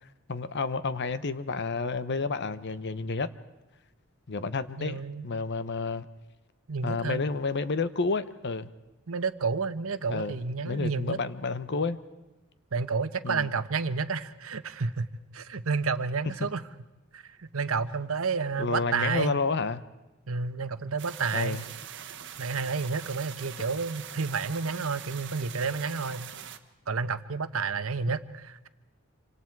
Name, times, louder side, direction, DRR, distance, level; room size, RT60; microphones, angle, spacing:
voice 1, 0.3-3.3 4.3-6.1 6.8-8.7 10.1-10.4 10.7-12.0 13.2-13.5 16.4-16.5 18.6-19.8 21.3-21.6, left 4 dB, 55° left, 13 dB, 0.9 m, -30 dB
voice 2, 4.8-5.3 6.7-7.2 9.1-11.2 12.7-15.1 15.3-16.6 17.1-19.4 20.3-21.6 22.4-26.3 26.9-28.7, right 4 dB, 75° right, 12 dB, 1.0 m, -30 dB
sound 1, 21.0-26.6, right 9 dB, 60° right, 1.3 m, -43 dB
27.5 x 25.0 x 4.7 m, 1.0 s
head